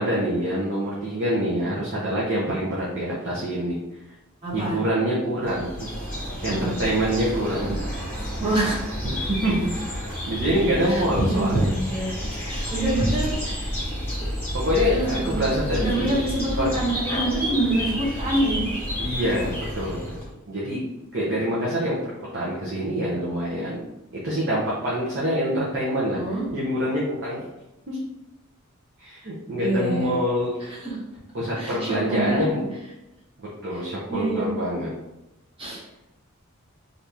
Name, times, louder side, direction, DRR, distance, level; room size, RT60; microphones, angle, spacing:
voice 1, 0.0-3.7 4.5-5.9 6.4-6.5 6.8-7.8 9.0-9.7 10.0-11.7 14.5-16.2 16.6-16.7 19.0-20.8 21.1-22.0 22.3-23.8 24.2-26.2 26.5-27.4 27.9-28.0 29.0-30.5 31.3-32.6 33.4-34.9, equal, 55° right, -6 dB, 0.7 m, -25 dB
voice 2, 4.4-4.8 6.5-6.9 8.4-8.8 10.9-13.6 14.9-15.4 15.7-18.7 26.1-26.4 29.6-30.1 30.6-31.0 31.5-32.6 33.7-33.8 34.1-34.5 35.6-35.8, right 1 dB, 25° right, -6 dB, 1.1 m, -26 dB
sound 1, 5.4-20.3, equal, 10° left, 1.2 m, -30 dB
2.8 x 2.6 x 3.4 m, 0.95 s
head